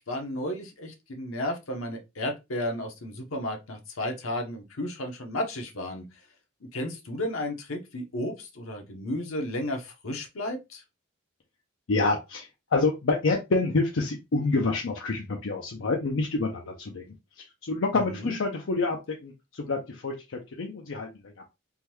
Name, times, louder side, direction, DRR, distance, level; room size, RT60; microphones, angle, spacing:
voice 1, 0.0-6.0 6.7-10.8 17.9-18.4, left 1 dB, 85° left, 0.9 m, -33 dB
voice 2, 11.9-17.1 17.4-21.4, left 3 dB, 70° left, 0.5 m, -28 dB
3.6 x 2.2 x 2.9 m
head